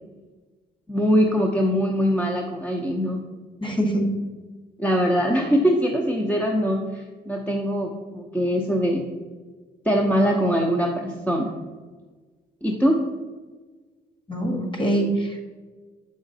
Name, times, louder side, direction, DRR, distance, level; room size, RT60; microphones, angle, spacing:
voice 1, 0.9-3.2 4.8-9.0 9.8-11.5 12.6-13.0, equal, 10° left, 0 dB, 0.8 m, -22 dB
voice 2, 3.6-4.1 14.3-15.4, right 1 dB, 25° left, 3 dB, 1.6 m, -24 dB
7.1 x 5.3 x 4.0 m, 1.3 s
cardioid pair, 90°, 20 cm